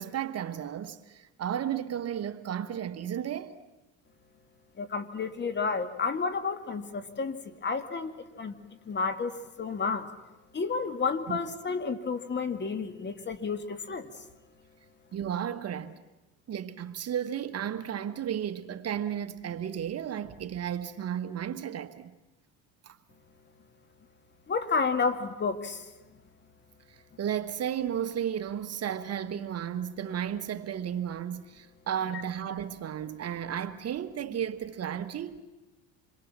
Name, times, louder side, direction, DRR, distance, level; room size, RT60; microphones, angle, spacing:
voice 1, 0.0-3.5 11.3-11.4 15.1-15.9 16.5-22.1 22.8-23.0 27.2-35.4, right 9 dB, 45° right, 1.4 m, -33 dB
voice 2, 4.8-8.1 8.4-8.6 8.9-10.1 10.5-14.1 24.5-25.8, left 4 dB, 30° left, 2.0 m, -31 dB
27.0 x 22.5 x 7.4 m
supercardioid pair, 95°, 34 cm